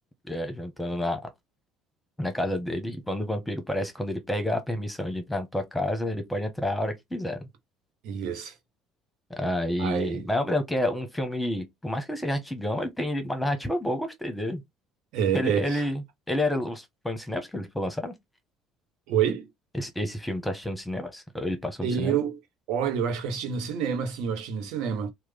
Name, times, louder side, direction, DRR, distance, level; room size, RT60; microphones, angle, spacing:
voice 1, 0.2-1.2 2.2-7.4 9.3-14.6 15.3-16.0 16.3-18.1 19.7-22.2, left 1 dB, 5° left, 1.0 m, -29 dB
voice 2, 8.0-8.5 9.8-10.3 15.1-15.9 19.1-19.5 21.8-22.4 22.7-25.1, right 8 dB, 70° right, 0.9 m, -27 dB
3.1 x 2.3 x 3.3 m
hypercardioid pair, 65°, 0 cm